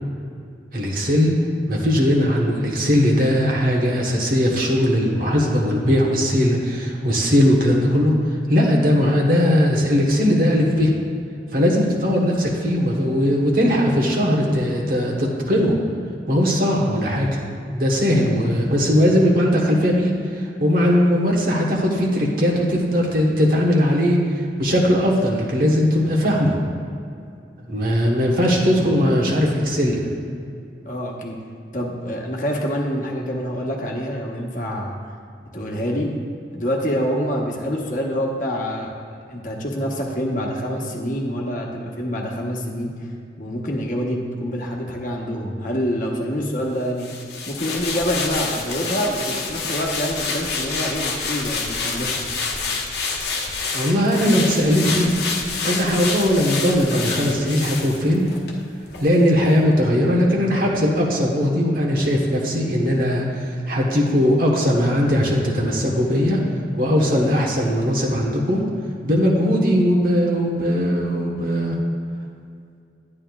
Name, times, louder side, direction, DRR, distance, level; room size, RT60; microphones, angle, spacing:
voice 1, 0.7-1.3 1.7-8.1 8.5-10.9 11.5-15.7 16.3-17.4 17.7-20.1 20.3-24.2 24.6-26.6 27.6-30.0 53.7-55.1 55.6-58.3 59.0-66.4 66.7-68.6 69.0-71.8, equal, 55° right, -1 dB, 1.2 m, -19 dB
voice 2, 30.8-31.4 31.7-35.0 35.5-36.1 36.5-42.9 43.4-47.1 47.4-52.2, equal, 45° left, -1 dB, 1.1 m, -26 dB
sound 1, 47.0-58.6 58.9-59.1, left 4 dB, 70° left, 1.0 m, -28 dB
11.0 x 9.7 x 2.4 m, 2.4 s
head